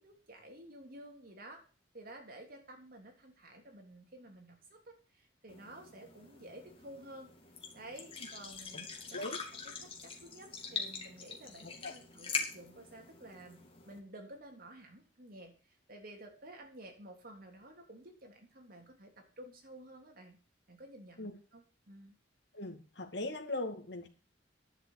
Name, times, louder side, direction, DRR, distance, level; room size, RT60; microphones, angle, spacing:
voice 1, 0.0-1.6 1.9-7.3 7.7-9.3 9.6-13.6 13.9-20.4 20.7-22.1, right 1 dB, 55° right, 3 dB, 3.3 m, -52 dB
sound 1, 5.5-14.0, left 5 dB, 30° left, 2.4 m, -43 dB
voice 2, 11.6-11.9 21.2-21.3 22.5-24.1, left 2 dB, 65° left, 4 dB, 2.3 m, -40 dB
11.0 x 6.0 x 8.7 m, 0.37 s
head